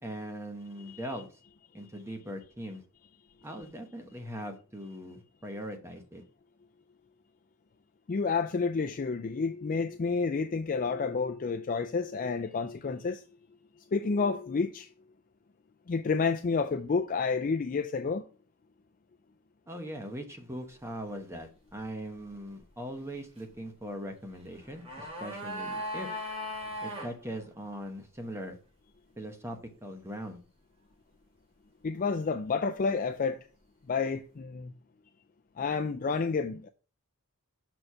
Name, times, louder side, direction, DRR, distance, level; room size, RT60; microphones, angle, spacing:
voice 1, 0.0-1.3 1.7-2.8 3.4-6.2 19.7-26.1 26.8-28.6 29.2-30.4, equal, 10° right, 1.0 m, -40 dB
voice 2, 8.1-13.2 13.9-14.9 15.9-18.2 31.8-33.4 33.9-34.7 35.6-36.7, left 4 dB, 40° left, 0.4 m, -30 dB
sound 1, 24.5-27.1 27.4-27.5, left 1 dB, 30° right, 2.6 m, -37 dB
6.4 x 4.6 x 5.6 m
head